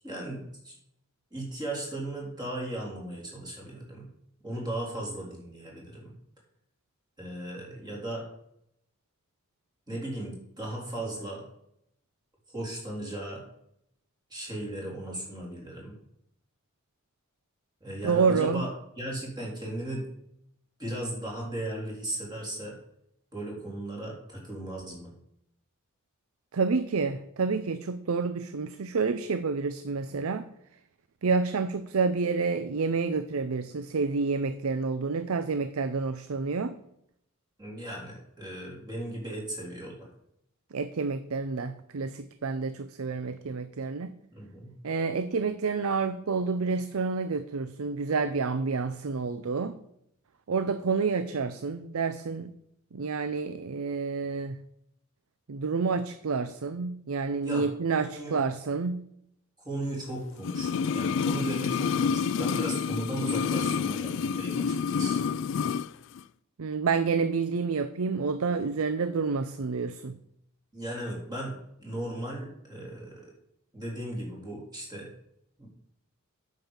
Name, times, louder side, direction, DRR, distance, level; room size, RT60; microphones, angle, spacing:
voice 1, 0.0-0.8 1.3-4.1 4.4-6.1 7.2-8.3 9.9-11.5 12.5-13.4 14.3-16.0 17.8-18.7 19.0-20.1 20.8-22.8 23.3-25.1 37.6-40.1 44.3-44.7 57.4-57.7 58.0-58.4 59.6-65.2 70.7-73.3 73.7-75.1 75.6-75.7, right 1 dB, 20° right, -3 dB, 3.5 m, -36 dB
voice 2, 18.0-18.6 26.5-30.5 31.2-36.8 40.7-44.1 44.8-49.8 50.5-52.5 52.9-54.5 55.5-59.0 66.6-70.2, right 4 dB, 75° right, 11 dB, 0.5 m, -29 dB
sound 1, 60.4-65.9 66.2-66.3, left 6 dB, 60° left, 0.3 m, -28 dB
9.0 x 5.6 x 7.2 m, 0.75 s
head